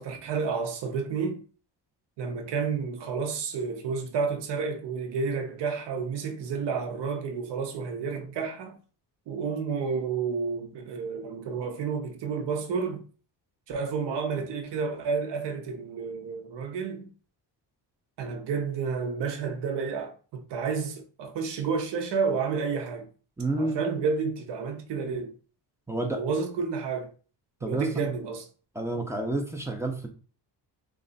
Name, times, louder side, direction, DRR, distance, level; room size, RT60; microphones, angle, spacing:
voice 1, 0.0-1.4 2.2-8.8 9.3-13.0 13.7-17.1 18.2-23.1 23.6-25.3 26.1-27.1 27.6-28.5, right 5 dB, 70° right, 0.8 m, -30 dB
voice 2, 23.4-23.8 25.9-26.2 27.6-28.1 28.8-30.1, right 2 dB, 5° right, 0.4 m, -30 dB
3.2 x 2.4 x 3.9 m
cardioid pair, 160°, 43 cm